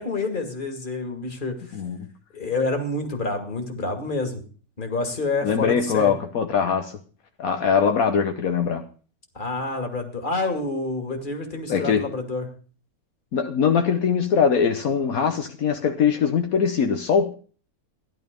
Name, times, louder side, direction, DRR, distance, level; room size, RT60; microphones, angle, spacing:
voice 1, 0.0-1.6 2.3-4.4 4.8-6.1 9.3-12.5, left 3 dB, 35° left, 2.4 m, -28 dB
voice 2, 1.7-2.1 5.4-7.0 7.4-8.8 11.7-12.1 13.3-17.3, left 6 dB, 75° left, 1.5 m, -22 dB
15.5 x 11.0 x 5.2 m
omnidirectional pair, 1.5 m